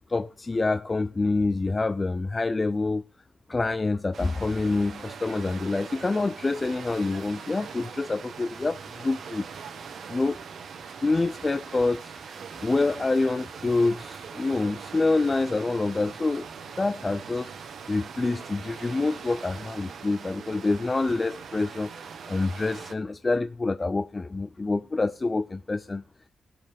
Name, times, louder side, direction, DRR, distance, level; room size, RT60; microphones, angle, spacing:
voice 1, 0.1-3.0 3.5-9.5 10.1-10.4 11.0-12.3 12.6-16.5 16.8-17.5 17.9-26.0, left 3 dB, 20° left, 0.4 m, -27 dB
sound 1, 4.1-22.9, right 6 dB, 60° right, 1.2 m, -41 dB
18.5 x 6.5 x 3.5 m
wide cardioid pair, 160°, 0 cm